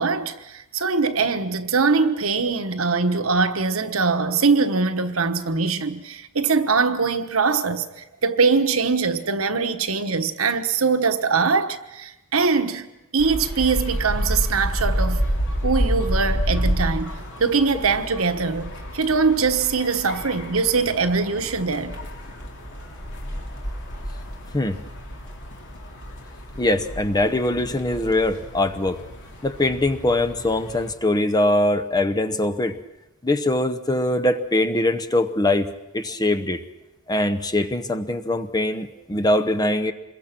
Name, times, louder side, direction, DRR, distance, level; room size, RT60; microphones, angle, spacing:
voice 1, 0.0-12.9 13.1-15.2 15.6-22.0, right 4 dB, 75° right, 1.2 m, -22 dB
sound 1, 13.2-30.9, equal, 55° left, 3.0 m, -29 dB
voice 2, 26.6-29.0 29.4-32.8 33.2-35.7 35.9-36.6 37.1-39.9, left 1 dB, 20° left, 0.8 m, -22 dB
26.5 x 22.0 x 6.0 m
head